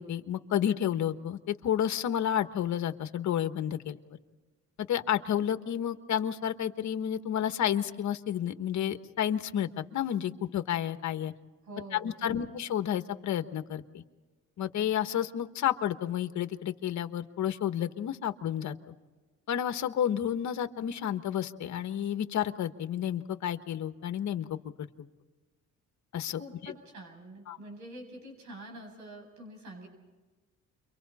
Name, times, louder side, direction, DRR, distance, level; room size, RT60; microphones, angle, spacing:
voice 1, 0.0-4.0 4.9-11.3 11.9-14.0 14.6-18.9 19.5-24.6 26.1-26.7 27.5-27.6, left 10 dB, 70° left, 9 dB, 1.4 m, -31 dB
voice 2, 11.6-12.4 26.3-29.9, right 1 dB, 70° right, 1 dB, 7.8 m, -46 dB
29.5 x 24.0 x 4.3 m, 1.3 s
cardioid pair, 90°, 30 cm